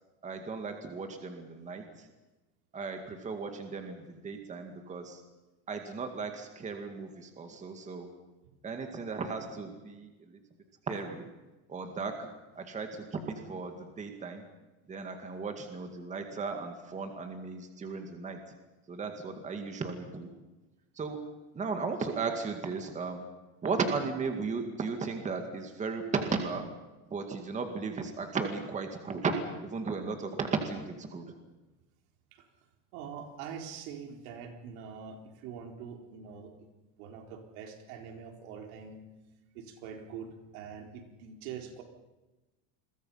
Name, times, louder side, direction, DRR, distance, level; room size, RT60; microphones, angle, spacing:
voice 1, 0.2-2.1 2.7-5.2 5.7-8.1 8.6-10.4 10.9-11.2 11.7-12.3 12.6-14.4 14.9-18.4 18.9-20.3 21.0-21.2 21.5-23.3 23.6-26.7 27.1-29.3 29.6-31.3, right 4 dB, 15° right, 5 dB, 2.1 m, -35 dB
voice 2, 32.9-36.7 37.0-39.0 39.5-41.8, right 7 dB, 75° right, 3 dB, 4.4 m, -44 dB
29.0 x 22.5 x 5.8 m, 1.1 s
cardioid pair, 170°, 44 cm